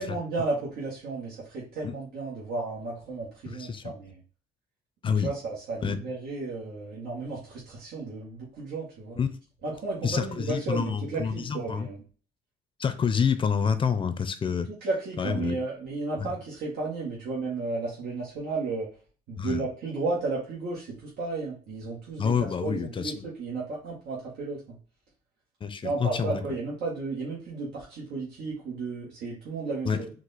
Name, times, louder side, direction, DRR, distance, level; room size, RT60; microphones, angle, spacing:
voice 1, 0.0-4.2 5.0-9.2 9.6-12.0 14.8-18.9 19.3-22.3 22.6-24.8 25.8-30.1, right 3 dB, 75° right, 1.5 m, -33 dB
voice 2, 3.5-3.9 5.0-5.3 5.8-6.0 9.2-9.3 10.0-11.9 12.8-14.7 15.2-15.6 16.2-16.3 19.4-19.7 22.2-23.3 25.6-26.4 29.8-30.0, left 6 dB, 30° left, 0.6 m, -28 dB
4.6 x 2.5 x 4.1 m
cardioid pair, 110°, 17 cm